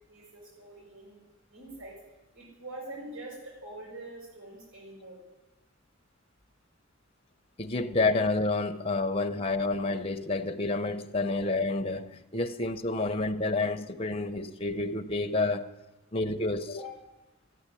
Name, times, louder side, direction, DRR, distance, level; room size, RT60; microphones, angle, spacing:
voice 1, 0.1-1.2 1.5-1.9 2.3-5.2 16.8-17.0, right 1 dB, 85° right, -4 dB, 5.8 m, -44 dB
voice 2, 7.6-15.7 16.1-16.9, left 3 dB, 25° left, 5 dB, 0.8 m, -29 dB
13.5 x 9.7 x 9.9 m, 1.0 s
head